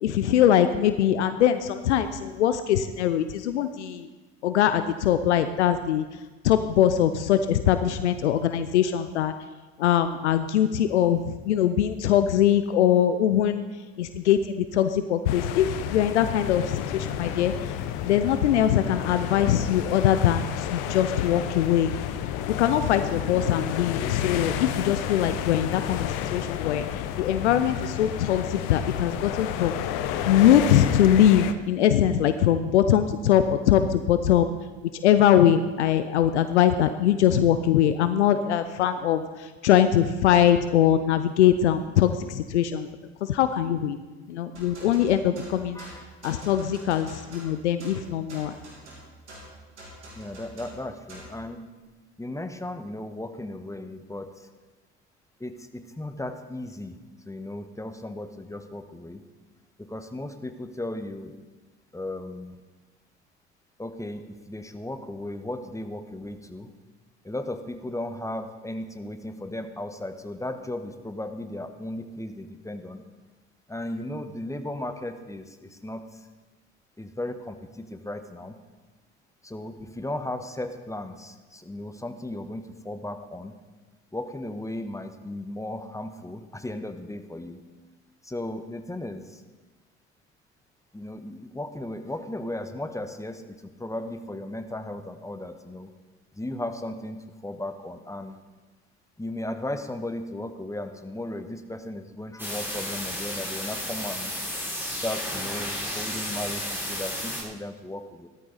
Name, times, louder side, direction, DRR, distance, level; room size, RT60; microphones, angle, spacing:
voice 1, 0.0-4.1 4.4-6.1 6.4-9.3 9.8-13.6 14.0-17.8 18.0-21.9 22.6-29.8 30.2-34.5 35.0-42.9 43.2-44.0 44.3-45.8 46.2-48.5, left 10 dB, 85° left, 10 dB, 0.6 m, -22 dB
sound 1, 15.3-31.5, left 10 dB, 65° left, 0.9 m, -31 dB
sound 2, 44.6-51.4, right 1 dB, 90° right, 3.1 m, -45 dB
voice 2, 50.1-51.7 52.2-54.5 55.4-57.0 57.2-59.2 59.9-61.3 61.9-62.6 63.8-66.7 67.2-73.0 73.7-76.0 77.0-78.5 79.4-83.5 84.1-87.6 88.2-89.4 90.9-95.9 96.4-97.2 97.4-98.4 99.2-104.3 105.0-108.3, left 1 dB, 10° left, 8 dB, 1.3 m, -36 dB
sound 3, 102.4-107.4, equal, 5° right, 5.2 m, -32 dB
15.5 x 13.0 x 4.1 m, 1.2 s
hypercardioid pair, 55°, 34 cm